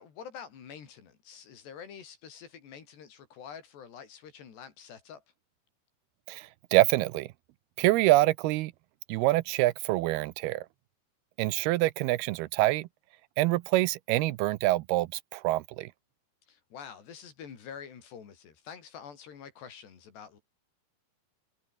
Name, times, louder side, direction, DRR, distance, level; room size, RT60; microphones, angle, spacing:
voice 1, 0.0-5.2 16.5-20.4, left 7 dB, 85° left, 6.0 m, -47 dB
voice 2, 6.3-7.3 7.8-8.7 9.1-10.7 11.4-12.9 13.4-15.9, right 18 dB, 80° right, 2.6 m, -26 dB
omnidirectional pair, 4.7 m